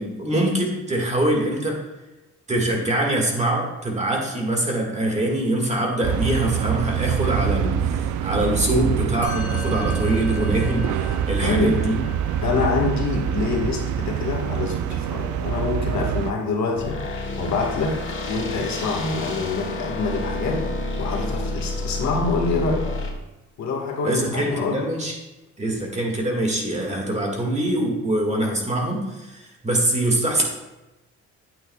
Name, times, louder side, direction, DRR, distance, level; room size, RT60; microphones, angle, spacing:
voice 1, 0.0-1.8 2.5-12.0 24.0-25.2 25.6-30.4, right 1 dB, 20° right, 0 dB, 1.9 m, -24 dB
sound 1, 6.0-16.3, right 9 dB, 80° right, 0.5 m, -25 dB
Musical instrument, 9.2-18.8, left 3 dB, 5° left, 2.3 m, -42 dB
voice 2, 11.4-11.8 12.4-17.0 17.4-20.7 21.0-22.9 23.6-24.8, left 4 dB, 65° left, 0 dB, 1.6 m, -26 dB
sound 2, 16.8-23.1, left 2 dB, 40° left, 1.7 m, -29 dB
9.2 x 8.5 x 2.3 m, 1.0 s
cardioid pair, 90°, 30 cm